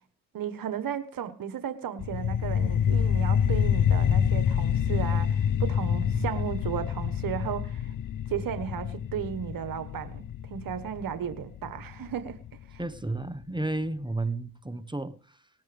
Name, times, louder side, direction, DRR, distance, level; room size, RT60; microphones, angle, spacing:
voice 1, 0.3-7.9 8.3-12.4 12.7-12.8, right 9 dB, 65° right, 1.4 m, -34 dB
sound 1, 2.0-13.0, left 8 dB, 60° left, 0.8 m, -27 dB
voice 2, 12.8-15.5, right 2 dB, 15° right, 1.3 m, -32 dB
19.5 x 14.0 x 3.5 m
supercardioid pair, 55°, 36 cm